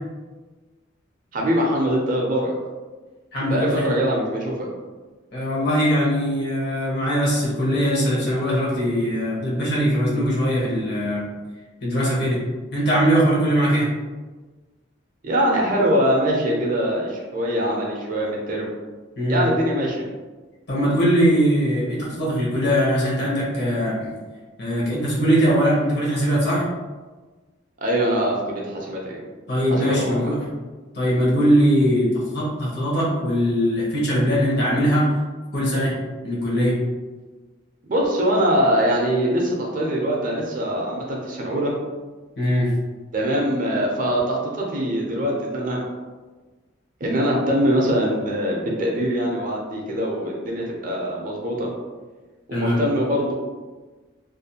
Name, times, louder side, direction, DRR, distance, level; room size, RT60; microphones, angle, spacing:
voice 1, 1.3-2.5 3.5-4.7 15.2-18.7 19.3-20.1 27.8-29.2 29.7-30.2 37.9-41.7 43.1-45.8 47.0-51.7 52.5-53.3, equal, 40° right, -1 dB, 0.5 m, -23 dB
voice 2, 3.3-4.0 5.3-11.3 11.8-12.4 12.7-13.9 19.2-19.5 20.7-24.1 24.6-26.7 29.5-30.5 30.9-35.1 35.5-35.9 36.2-36.8 42.4-42.7 52.5-52.8, equal, 55° left, -6 dB, 0.9 m, -21 dB
2.5 x 2.2 x 2.7 m, 1.3 s
head